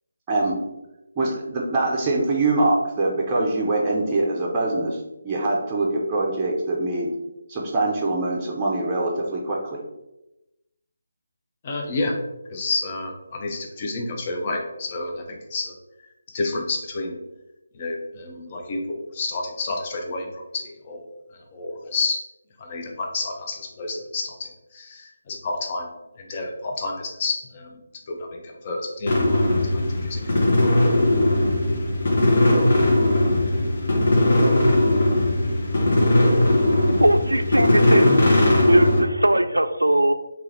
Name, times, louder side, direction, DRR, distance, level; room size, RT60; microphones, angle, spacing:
voice 1, 1.2-7.1 7.5-9.8, right 2 dB, 15° right, -4 dB, 0.6 m, -23 dB
voice 2, 11.6-12.1 12.5-15.7 16.3-17.2 17.7-21.0 21.3-22.2 22.6-25.9 26.2-27.8 28.1-30.7, left 3 dB, 30° left, 1 dB, 0.6 m, -30 dB
sound 1, 29.1-39.0, left 1 dB, 50° left, 1.0 m, -19 dB
voice 3, 37.0-38.2 38.7-40.1, right 1 dB, 85° right, 8 dB, 0.3 m, -19 dB
3.5 x 2.9 x 3.2 m, 0.94 s
figure-of-eight pair, 150°, 0 cm